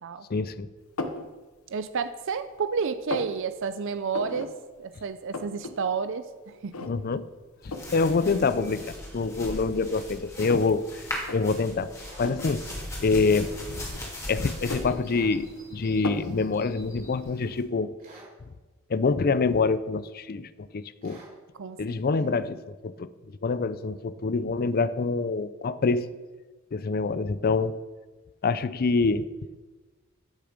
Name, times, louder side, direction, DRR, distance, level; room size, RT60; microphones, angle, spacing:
voice 1, 0.3-0.7 6.9-7.2 7.6-11.0 11.3-12.7 13.0-13.5 14.3-17.9 18.9-21.2 21.8-23.1 23.4-26.1 26.7-27.8 28.4-29.4, left 4 dB, 45° left, 15 dB, 0.5 m, -26 dB
sound 1, 1.0-1.3 1.8-2.5 2.8-3.3 4.1-4.5 4.8-4.9 5.1-5.7 6.1-6.2 6.7-7.2 7.7-8.0 8.8-8.9 9.4-10.8 11.2-11.4 12.2-12.5 13.5-14.2 14.5-15.6 16.0-16.4, left 2 dB, 90° left, 1.0 m, -35 dB
voice 2, 1.7-4.5 4.8-6.7 21.6-22.4, right 5 dB, 60° right, 11 dB, 0.5 m, -31 dB
sound 2, 7.6-17.6, left 1 dB, 15° left, 2.4 m, -39 dB
sound 3, 12.0-12.3 15.0-15.4 18.0-18.3 21.0-21.3, right 2 dB, 45° right, 3.2 m, -49 dB
14.0 x 6.8 x 5.1 m, 1.3 s
head